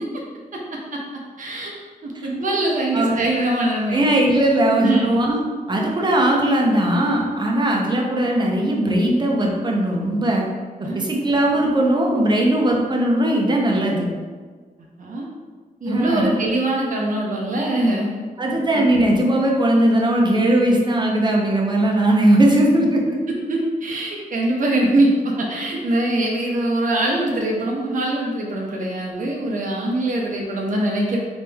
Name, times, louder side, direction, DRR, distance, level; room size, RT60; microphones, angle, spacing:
voice 1, 1.4-1.7 2.0-4.0 4.8-5.1 10.8-11.2 15.0-15.2 15.8-18.1 18.7-18.8 23.5-31.2, right 1 dB, 65° right, -2 dB, 0.7 m, -22 dB
voice 2, 3.9-5.4 5.7-10.5 10.8-14.1 15.9-16.4 18.4-23.0, right 1 dB, 30° right, -1 dB, 0.7 m, -19 dB
4.0 x 3.4 x 3.4 m, 1.5 s
wide cardioid pair, 140°, 15 cm